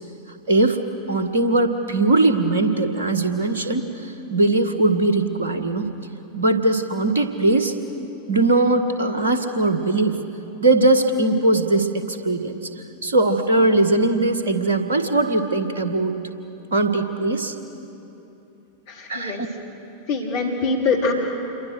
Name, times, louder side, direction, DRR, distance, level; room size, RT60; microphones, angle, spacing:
voice 1, 0.5-0.8 1.1-5.9 6.3-7.8 8.3-10.2 10.6-12.6 13.0-16.1 16.7-17.5 19.1-19.5, right 2 dB, 65° right, 8 dB, 1.7 m, -20 dB
voice 2, 18.9-19.4 20.1-21.1, left 4 dB, 50° left, 0 dB, 3.7 m, -23 dB
27.5 x 23.0 x 6.5 m, 2.9 s
figure-of-eight pair, 90°, 0 cm